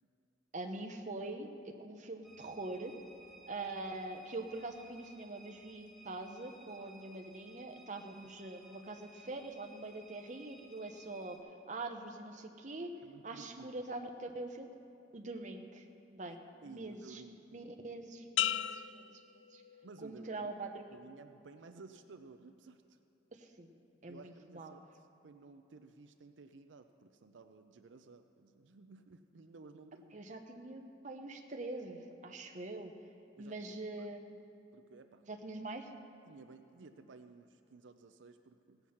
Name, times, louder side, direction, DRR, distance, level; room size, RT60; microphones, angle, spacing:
voice 1, 0.5-1.5 1.8-2.9 3.5-11.4 11.7-12.9 13.2-14.7 15.1-15.8 16.1-16.4 16.7-17.2 17.5-19.6 20.0-20.8 23.3-24.2 24.5-24.7 30.1-32.9 33.4-34.4 35.3-35.9, right 2 dB, 40° right, 4 dB, 0.9 m, -44 dB
sound 1, 2.2-11.4, right 1 dB, ahead, 1.1 m, -59 dB
voice 2, 13.0-13.7 16.6-17.7 19.8-20.5 20.9-23.0 24.1-24.8 25.2-30.2 33.4-34.1 34.7-35.3 36.3-38.8, right 4 dB, 85° right, 8 dB, 0.5 m, -55 dB
sound 2, 18.4-20.1 20.6-21.1, left 12 dB, 75° left, 0.3 m, -37 dB
17.0 x 8.0 x 5.8 m, 2.7 s
head